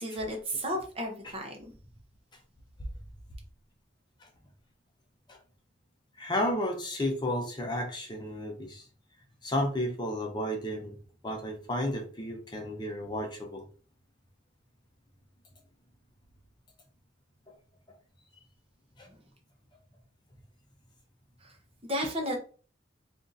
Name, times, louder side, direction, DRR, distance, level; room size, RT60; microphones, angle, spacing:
voice 1, 0.0-1.6 21.4-21.5 21.8-22.4, equal, 30° right, 0.9 m, -33 dB
voice 2, 6.2-8.9 9.4-11.0 11.2-13.6 19.0-19.1, left 1 dB, 25° left, 0.7 m, -32 dB
3.5 x 2.6 x 3.9 m
head